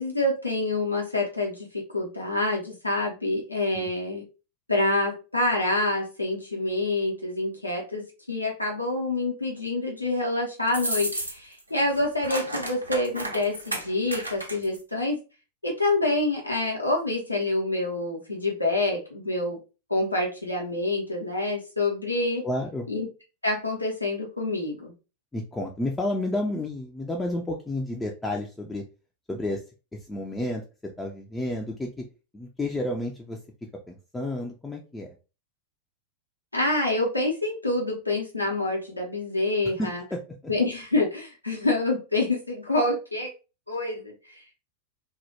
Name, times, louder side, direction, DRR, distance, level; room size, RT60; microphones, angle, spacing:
voice 1, 0.0-4.2 4.7-15.2 15.6-19.6 19.9-22.4 22.9-23.1 23.4-24.9 36.5-40.0 40.5-43.3 43.7-44.1, left 2 dB, 85° left, -1 dB, 0.6 m, -27 dB
sound 1, 10.7-11.6 11.9-14.8, right 1 dB, 85° right, 0.5 m, -32 dB
voice 2, 22.4-22.9 25.3-28.8 29.3-29.6 29.9-30.6 31.0-32.0 32.3-33.4 33.9-35.1 39.8-40.2, left 1 dB, 10° left, 0 dB, 0.3 m, -31 dB
2.1 x 2.1 x 2.8 m, 0.31 s
figure-of-eight pair, 90°, 0 cm